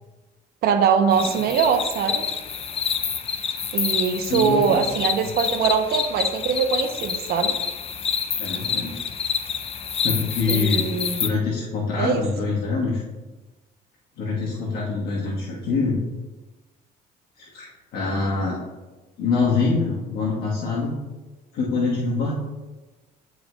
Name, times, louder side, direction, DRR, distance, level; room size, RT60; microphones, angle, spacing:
voice 1, 0.6-2.3 3.7-7.6 10.5-11.2 12.0-12.2, right 6 dB, 70° right, 7 dB, 0.7 m, -22 dB
sound 1, 1.1-11.3, left 6 dB, 35° left, 0.6 m, -27 dB
voice 2, 4.3-4.9 8.4-8.9 10.0-10.9 11.2-13.0 14.2-16.0 17.4-18.6 19.2-20.9 21.5-22.4, left 4 dB, 70° left, -5 dB, 1.3 m, -25 dB
10.5 x 4.6 x 2.3 m, 1.2 s
cardioid pair, 110°, 17 cm